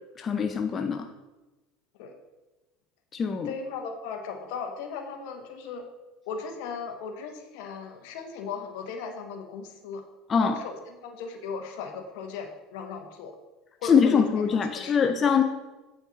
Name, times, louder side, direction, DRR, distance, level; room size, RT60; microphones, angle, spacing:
voice 1, 0.2-1.1 3.1-3.5 10.3-10.5 13.8-15.4, left 6 dB, 35° left, 6 dB, 0.6 m, -23 dB
voice 2, 3.4-5.8 6.3-10.0 10.4-13.3 13.8-15.1, left 5 dB, 70° left, 6 dB, 1.1 m, -37 dB
8.3 x 5.8 x 4.0 m, 1.1 s
hypercardioid pair, 95°, 0 cm